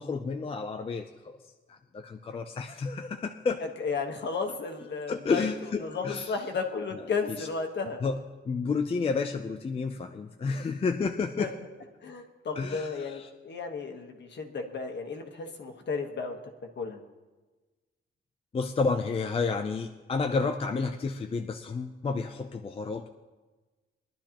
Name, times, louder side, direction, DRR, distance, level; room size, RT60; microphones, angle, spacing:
voice 1, 0.0-1.4 1.7-3.7 5.1-6.4 7.3-7.5 8.0-8.2 8.5-11.5 12.6-13.3 18.5-23.1, left 4 dB, 25° left, 5 dB, 0.5 m, -31 dB
voice 2, 3.8-5.5 5.8-8.0 11.4-11.5 12.0-16.4 16.8-17.0, left 4 dB, 55° left, 4 dB, 1.3 m, -33 dB
21.5 x 11.5 x 2.9 m, 1.2 s
wide cardioid pair, 160°, 21 cm